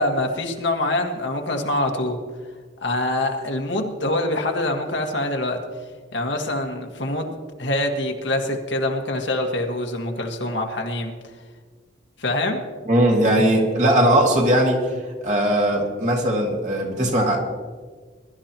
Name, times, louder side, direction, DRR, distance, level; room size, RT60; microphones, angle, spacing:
voice 1, 0.0-2.2 2.8-5.6 6.1-11.1 12.2-12.6, left 1 dB, 70° left, 2 dB, 1.7 m, -25 dB
voice 2, 12.9-14.9 15.2-17.4, right 1 dB, 40° right, 0 dB, 2.1 m, -19 dB
21.5 x 12.5 x 3.0 m, 1.5 s
head